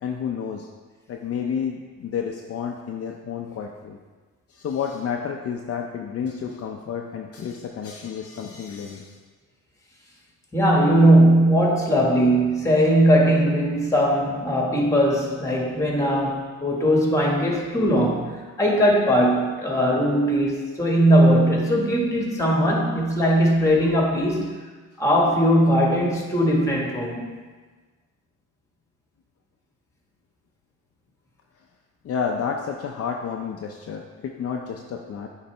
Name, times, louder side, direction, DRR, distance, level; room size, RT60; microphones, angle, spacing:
voice 1, 0.0-0.7 1.1-4.0 4.5-9.2 32.0-35.3, left 7 dB, 50° left, 1 dB, 0.6 m, -30 dB
voice 2, 10.5-24.5 25.0-27.3, equal, 10° left, -2 dB, 1.8 m, -19 dB
8.6 x 4.0 x 3.4 m, 1.4 s
cardioid pair, 90°, 30 cm